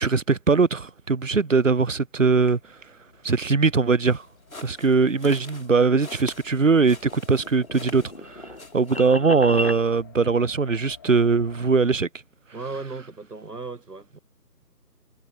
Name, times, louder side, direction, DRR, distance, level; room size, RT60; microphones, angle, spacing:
voice 1, 0.0-2.6 3.2-4.3 4.6-12.1, right 4 dB, 50° right, 0.6 m, -21 dB
sound 1, 2.5-11.7, left 7 dB, 15° left, 2.6 m, -53 dB
sound 2, 4.1-8.3 8.6-9.0, left 3 dB, 55° left, 4.2 m, -44 dB
sound 3, 6.9-9.8, left 1 dB, 40° left, 0.7 m, -35 dB
voice 2, 12.5-14.2, right 3 dB, 70° right, 1.7 m, -36 dB
figure-of-eight pair, 160°, 49 cm